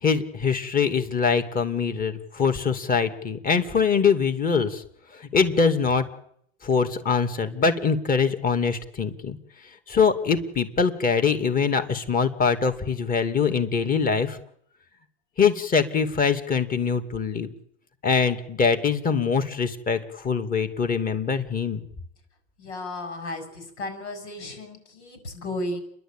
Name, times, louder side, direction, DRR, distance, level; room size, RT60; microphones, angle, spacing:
voice 1, 0.0-4.8 5.1-6.0 6.6-9.4 9.9-14.4 15.4-17.5 18.0-21.8, left 5 dB, 25° left, 7 dB, 2.4 m, -23 dB
voice 2, 22.6-25.8, left 1 dB, 90° left, 7 dB, 7.0 m, -34 dB
29.5 x 11.5 x 9.0 m, 0.69 s
supercardioid pair, 120°, 33 cm